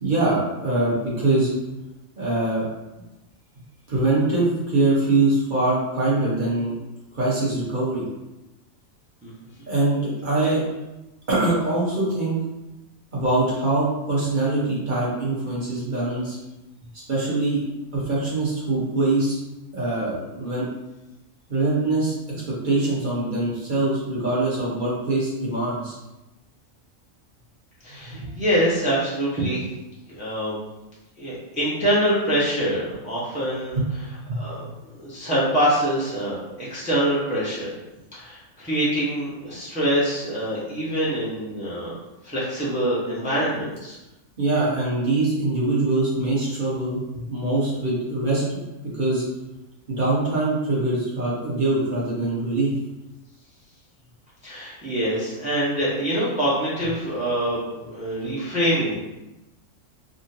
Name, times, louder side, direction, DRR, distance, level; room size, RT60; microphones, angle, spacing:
voice 1, 0.0-1.5 2.2-2.6 3.9-6.7 7.1-8.1 9.7-10.6 11.3-12.4 13.1-16.4 17.1-17.6 17.9-19.4 19.7-20.7 21.5-22.1 22.6-26.0 28.1-28.3 33.7-33.9 34.3-34.4 44.4-48.6 48.9-49.2 49.9-52.8, right 2 dB, 40° right, -7 dB, 1.1 m, -23 dB
voice 2, 27.8-29.6 30.2-30.6 31.2-33.8 34.3-34.7 35.0-37.7 38.1-42.0 42.2-44.0 54.4-59.0, equal, 10° right, -7 dB, 0.6 m, -25 dB
3.6 x 2.1 x 2.7 m, 0.99 s
omnidirectional pair, 1.4 m